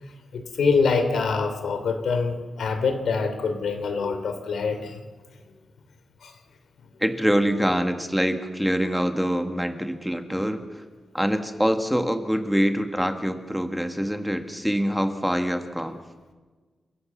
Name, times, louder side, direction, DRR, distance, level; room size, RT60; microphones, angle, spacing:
voice 1, 0.3-5.0 6.2-6.3, left 4 dB, 90° left, 7 dB, 2.8 m, -25 dB
voice 2, 7.0-10.6 11.1-16.0, equal, ahead, 6 dB, 1.6 m, -25 dB
28.5 x 16.5 x 7.2 m, 1.4 s
wide cardioid pair, 130°, 0 cm